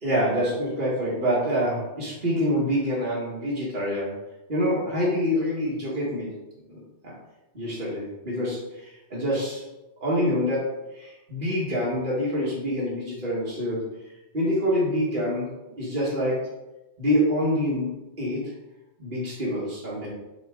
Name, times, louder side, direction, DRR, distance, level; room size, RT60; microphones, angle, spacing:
voice 1, 0.0-4.2 4.5-6.4 6.7-7.1 7.5-9.7 10.0-13.9 14.3-16.5 17.0-18.5 19.0-20.1, equal, 45° right, -7 dB, 1.9 m, -26 dB
6.6 x 5.1 x 3.7 m, 0.98 s
omnidirectional pair, 1.2 m